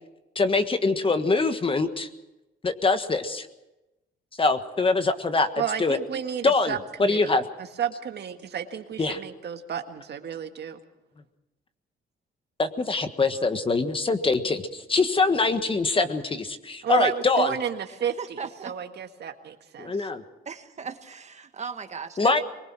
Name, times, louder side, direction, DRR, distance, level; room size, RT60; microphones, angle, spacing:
voice 1, 0.3-2.1 2.6-3.5 4.4-5.5 5.8-6.0 6.4-7.4 9.0-9.2 12.6-17.5 19.8-20.2 22.2-22.4, left 3 dB, 25° left, 9 dB, 1.5 m, -24 dB
voice 2, 5.5-10.8 16.8-20.1, right 8 dB, 60° right, 6 dB, 1.8 m, -32 dB
voice 3, 17.9-18.7 20.4-22.4, right 5 dB, 35° right, 8 dB, 1.7 m, -38 dB
22.5 x 21.0 x 6.2 m, 0.99 s
cardioid pair, 110°, 20 cm